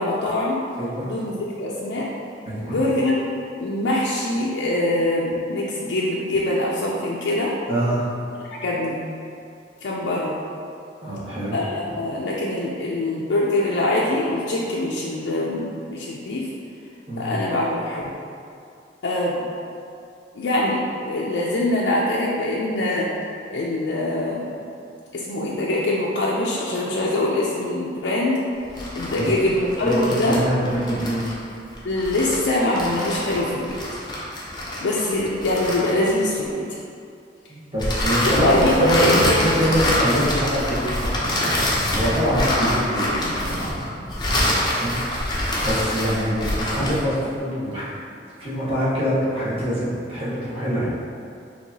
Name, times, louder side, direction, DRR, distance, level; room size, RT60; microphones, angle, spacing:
voice 1, 0.0-0.6 1.1-2.1 2.6-3.2 3.6-7.5 8.5-9.1 9.8-10.4 11.5-16.5 17.2-18.0 19.0-19.5 20.3-23.1 23.5-24.6 25.1-28.4 29.0-30.4 31.8-33.8 34.8-36.7 38.4-39.6, left 1 dB, 80° left, -5 dB, 0.4 m, -23 dB
voice 2, 0.8-1.1 2.5-2.8 7.7-8.1 11.0-11.6 17.1-17.3 29.2-29.3 29.8-31.3 37.5-39.1 39.3-44.9 45.2-47.9 48.4-50.9, equal, 35° right, -10 dB, 1.2 m, -25 dB
sound 1, 28.6-36.5 37.8-47.1, left 1 dB, 25° left, 0.6 m, -25 dB
4.6 x 2.8 x 2.7 m, 2.4 s
head